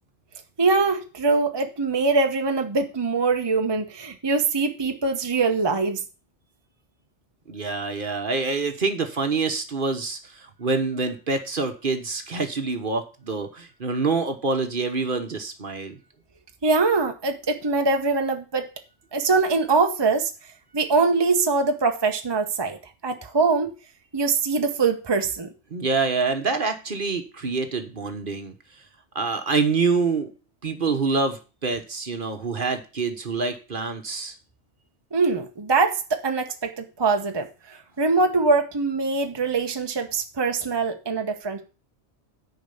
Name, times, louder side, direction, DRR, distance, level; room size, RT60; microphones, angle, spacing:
voice 1, 0.6-6.0 16.6-18.7 19.1-20.3 20.7-22.8 23.0-23.7 24.1-25.5 35.1-41.6, right 4 dB, 25° right, 5 dB, 0.9 m, -23 dB
voice 2, 7.5-16.0 25.7-28.5 29.1-30.3 30.6-34.4, right 4 dB, 50° right, 7 dB, 1.3 m, -26 dB
10.0 x 4.9 x 6.9 m, 0.32 s
omnidirectional pair, 1.2 m